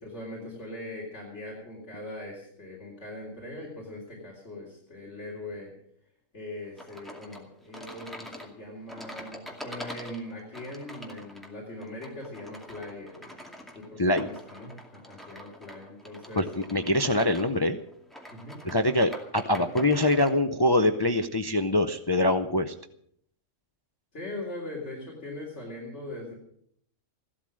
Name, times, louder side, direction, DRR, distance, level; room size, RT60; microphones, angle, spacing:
voice 1, 0.0-5.7 6.3-13.3 13.7-16.5 18.3-18.6 19.5-19.6 24.1-26.3, left 1 dB, 60° left, -4 dB, 3.9 m, -41 dB
sound 1, 6.8-20.4, equal, ahead, 2.3 m, -45 dB
voice 2, 16.4-17.8 18.6-22.7, left 1 dB, 25° left, 7 dB, 0.5 m, -24 dB
15.5 x 12.5 x 6.3 m, 0.66 s
omnidirectional pair, 1.3 m